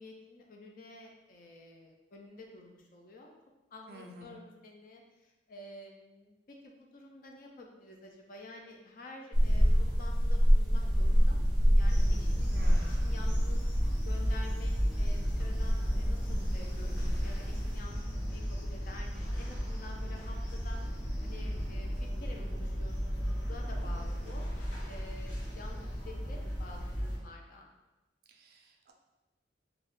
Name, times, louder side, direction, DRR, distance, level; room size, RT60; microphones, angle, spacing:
voice 1, 0.0-3.3 3.7-13.6 14.0-18.0 18.3-23.2 23.5-24.5 24.9-27.7, left 2 dB, 45° left, 1 dB, 0.3 m, -50 dB
voice 2, 3.9-4.4 12.5-13.0 28.3-28.9, right 1 dB, 55° right, 3 dB, 0.4 m, -50 dB
sound 1, 9.3-17.8, equal, 5° right, 0.6 m, -27 dB
sound 2, 11.9-27.2, equal, 75° left, 0.8 m, -35 dB
2.4 x 2.2 x 3.5 m, 1.1 s
head